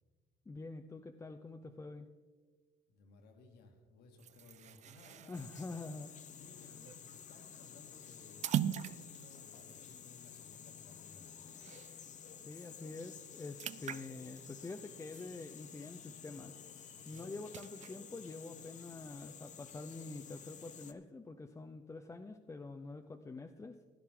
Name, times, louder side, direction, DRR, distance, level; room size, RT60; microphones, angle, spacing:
voice 1, 0.5-2.1 5.3-6.1 6.6-6.7 12.4-16.5 17.1-23.8, left 3 dB, 15° left, 4 dB, 0.6 m, -46 dB
voice 2, 2.9-5.4 6.3-11.3 16.9-17.3, left 2 dB, 75° left, 3 dB, 2.1 m, -60 dB
sound 1, 4.2-12.2 12.6-12.7 13.0-16.0 16.4-18.0, right 10 dB, 45° right, 0.4 m, -43 dB
sound 2, 5.3-20.9, left 8 dB, 45° left, 0.8 m, -52 dB
16.0 x 10.5 x 3.8 m, 1.5 s
cardioid pair, 110°, 17 cm